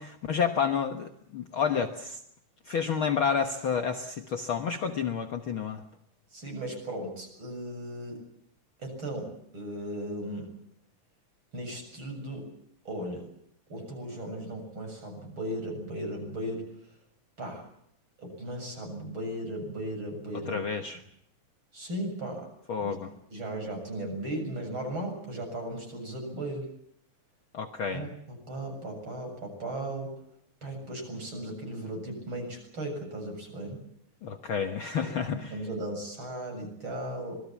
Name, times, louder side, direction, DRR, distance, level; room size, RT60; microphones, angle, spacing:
voice 1, 0.0-2.2 2.7-5.8 20.5-21.0 22.7-23.1 27.5-28.1 34.2-35.6, left 6 dB, 55° left, 5 dB, 1.8 m, -30 dB
voice 2, 6.3-8.2 8.8-10.5 11.5-12.5 12.8-13.3 13.7-16.6 17.4-17.6 18.2-20.6 21.7-22.5 22.8-23.0 23.3-26.7 27.9-30.1 30.6-33.8 35.0-37.4, right 1 dB, 40° right, 3 dB, 8.0 m, -36 dB
26.0 x 20.5 x 7.3 m, 0.73 s
omnidirectional pair, 3.4 m